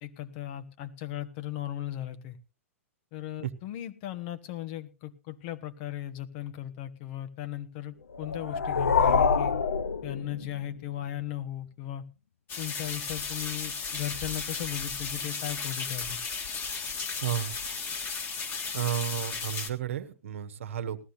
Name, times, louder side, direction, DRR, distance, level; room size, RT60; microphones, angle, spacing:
voice 1, 0.0-2.4 3.1-9.5 10.0-12.0 12.6-16.2, left 12 dB, 45° left, 10 dB, 1.2 m, -37 dB
sound 1, 8.1-10.8, left 6 dB, 75° left, 0.6 m, -26 dB
sound 2, 12.5-19.7, left 5 dB, 30° left, 1.8 m, -35 dB
voice 2, 17.2-17.5 18.7-21.0, right 10 dB, 65° right, 9 dB, 1.2 m, -32 dB
19.0 x 14.0 x 2.6 m, 0.31 s
figure-of-eight pair, 105°, 8 cm